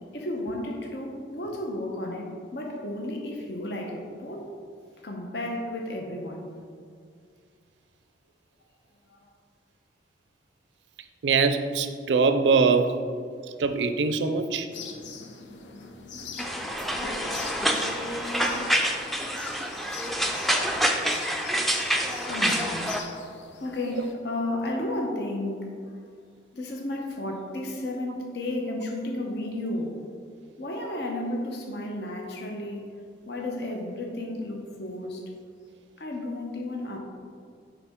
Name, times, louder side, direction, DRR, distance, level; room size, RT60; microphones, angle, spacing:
voice 1, 0.1-4.5 5.0-6.5 9.1-9.3 15.3-15.9 19.8-20.4 22.0-23.0 23.6-25.8 26.5-30.0 30.6-32.9 33.3-35.2 36.0-37.0, left 1 dB, 65° left, 1 dB, 0.8 m, -33 dB
voice 2, 11.2-12.9 13.6-14.7 20.5-20.7, right 4 dB, 85° right, 8 dB, 0.5 m, -23 dB
sound 1, 14.7-24.1, left 3 dB, 90° left, 0.6 m, -41 dB
sound 2, 16.4-23.0, equal, ahead, 0.4 m, -27 dB
6.9 x 5.3 x 3.6 m, 2.2 s
head